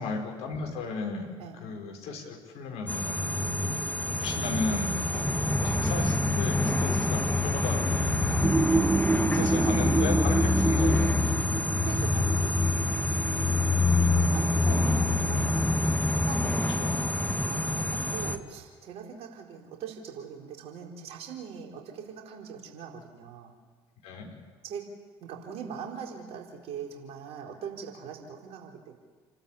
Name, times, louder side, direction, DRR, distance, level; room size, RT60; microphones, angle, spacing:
voice 1, 0.0-1.3 1.6-3.3 4.2-4.9 5.6-8.7 9.3-11.1 13.9-14.6 15.4-15.6 16.7-17.1 24.0-24.3, left 4 dB, 65° left, 1 dB, 5.2 m, -35 dB
sound 1, 2.9-18.4, left 2 dB, 10° left, 1.9 m, -26 dB
voice 2, 3.4-3.8 5.1-5.3 9.3-9.7 10.3-10.5 11.8-13.1 14.3-16.9 17.5-23.5 24.6-24.8 25.2-28.9, right 7 dB, 60° right, 1 dB, 4.4 m, -42 dB
sound 2, 8.4-15.9, right 3 dB, 15° right, 1.0 m, -29 dB
29.5 x 12.5 x 8.6 m, 1.5 s
hypercardioid pair, 55°, 12 cm